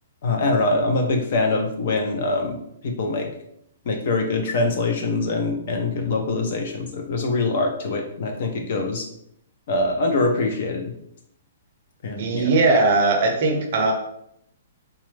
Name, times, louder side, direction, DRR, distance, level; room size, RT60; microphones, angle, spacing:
voice 1, 0.2-2.6 2.8-3.3 3.9-9.1 9.7-10.9 12.0-12.5, left 3 dB, 40° left, 4 dB, 0.5 m, -23 dB
voice 2, 12.2-13.9, right 3 dB, 35° right, 2 dB, 0.6 m, -19 dB
4.0 x 2.3 x 3.1 m, 0.73 s
hypercardioid pair, 180°, 0 cm